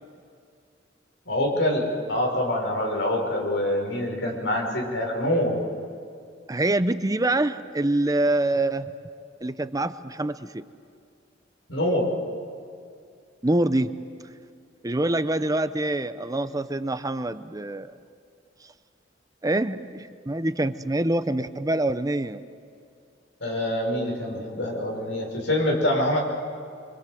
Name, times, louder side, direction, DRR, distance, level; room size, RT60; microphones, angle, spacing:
voice 1, 1.3-5.6 11.7-12.1 23.4-26.2, left 1 dB, 85° left, 0 dB, 5.6 m, -25 dB
voice 2, 6.5-8.9 9.4-10.6 13.4-13.9 14.8-17.9 19.4-22.4, right 1 dB, 20° right, 12 dB, 0.7 m, -25 dB
26.0 x 25.5 x 7.8 m, 2.3 s
head